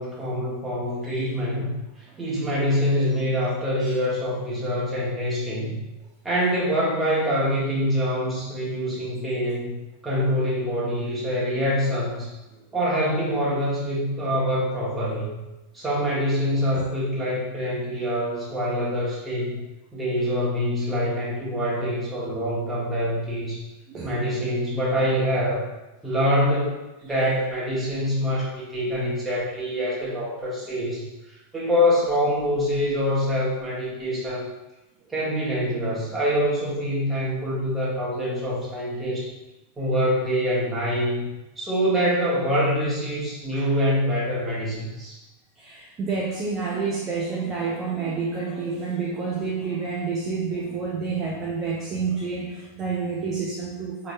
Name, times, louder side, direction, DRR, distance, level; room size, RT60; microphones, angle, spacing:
voice 1, 0.0-1.7 2.2-5.8 6.2-9.8 10.0-12.3 12.7-15.3 15.7-19.6 19.9-23.6 24.0-25.6 26.0-31.1 31.5-34.4 35.1-39.3 39.8-41.3 41.6-45.1, equal, 10° right, -7 dB, 1.4 m, -25 dB
voice 2, 2.1-2.5 3.8-3.9 16.7-16.9 23.9-24.1 43.5-43.7 45.6-54.1, right 5 dB, 30° right, -3 dB, 0.5 m, -29 dB
4.3 x 3.1 x 2.6 m, 1.0 s
figure-of-eight pair, 90°, 0 cm